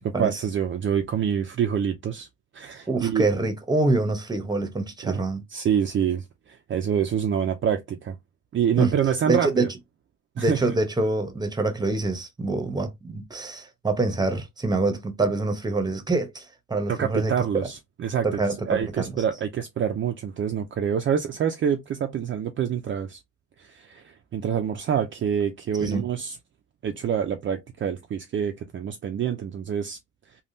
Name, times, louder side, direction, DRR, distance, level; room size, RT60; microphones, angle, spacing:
voice 1, 0.0-2.3 2.5-3.2 5.0-5.2 5.5-8.1 8.5-9.7 10.4-10.8 16.9-18.3 18.7-23.2 23.6-26.4 26.8-30.0, right 8 dB, 40° right, 0.5 m, -26 dB
voice 2, 2.9-5.4 8.8-8.9 9.3-9.7 10.4-17.3 18.2-19.1 25.8-26.1, right 2 dB, 15° right, 0.8 m, -25 dB
3.4 x 2.3 x 2.6 m
cardioid pair, 90°, 30 cm